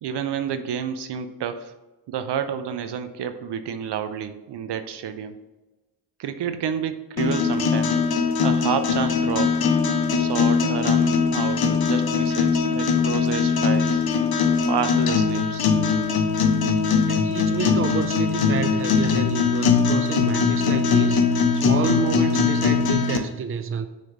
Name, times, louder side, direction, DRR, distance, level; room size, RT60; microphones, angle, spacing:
voice 1, 0.0-1.7 2.1-5.4 6.2-8.0 8.4-9.7 10.2-14.0 14.7-15.7, right 8 dB, 65° right, 0.7 m, -29 dB
sound 1, 7.2-23.2, left 5 dB, 55° left, 0.9 m, -21 dB
voice 2, 17.1-23.9, right 6 dB, 30° right, 0.6 m, -29 dB
6.4 x 3.5 x 5.7 m
cardioid pair, 75°, 44 cm